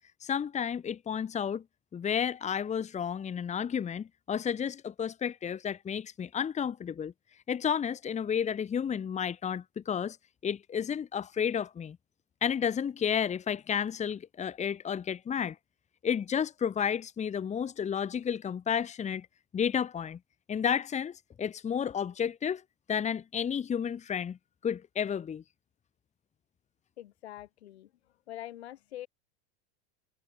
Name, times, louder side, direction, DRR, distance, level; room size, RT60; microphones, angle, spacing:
voice 1, 0.2-1.6 1.9-7.1 7.5-10.2 10.4-12.0 12.4-15.6 16.0-19.3 19.5-20.2 20.5-22.6 22.9-24.4 24.6-25.4, left 8 dB, 20° left, 1.8 m, -31 dB
voice 2, 27.0-27.9 28.3-29.1, left 13 dB, 85° left, 6.5 m, -44 dB
supercardioid pair, 120°, 31 cm